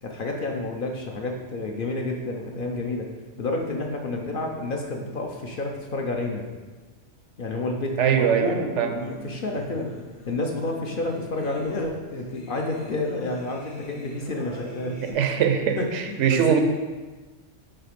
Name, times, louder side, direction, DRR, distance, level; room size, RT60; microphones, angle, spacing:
voice 1, 0.0-3.1 3.4-6.5 7.4-9.9 10.3-15.2 15.8-16.6, left 2 dB, 50° left, 1 dB, 0.7 m, -30 dB
voice 2, 8.0-9.2 15.0-16.6, right 8 dB, 75° right, 6 dB, 0.9 m, -22 dB
Singing, 8.9-15.1, left 2 dB, 80° left, 1.3 m, -41 dB
5.7 x 4.0 x 5.2 m, 1.3 s
omnidirectional pair, 1.3 m